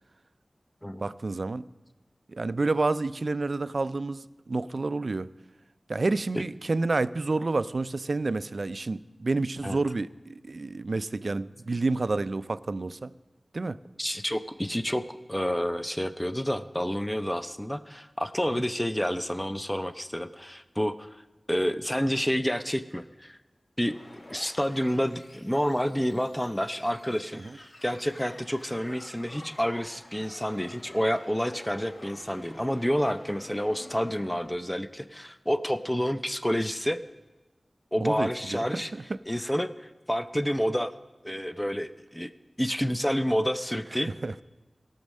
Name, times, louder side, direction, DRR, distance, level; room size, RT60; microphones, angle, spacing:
voice 1, 1.0-1.7 2.3-5.3 5.9-13.1 13.5-13.8 18.5-18.6 27.4-27.6 38.0-39.0 44.0-44.4, right 3 dB, 65° right, 15 dB, 0.4 m, -29 dB
voice 2, 14.0-21.2 21.5-23.4 23.8-24.0 24.3-37.0 37.9-38.9 39.3-40.9 41.2-42.3 42.6-44.1, equal, 10° left, 11 dB, 0.5 m, -29 dB
sound 1, 23.8-34.5, left 1 dB, 85° left, 2.6 m, -49 dB
17.0 x 6.3 x 6.4 m, 1.1 s
wide cardioid pair, 55°, 0 cm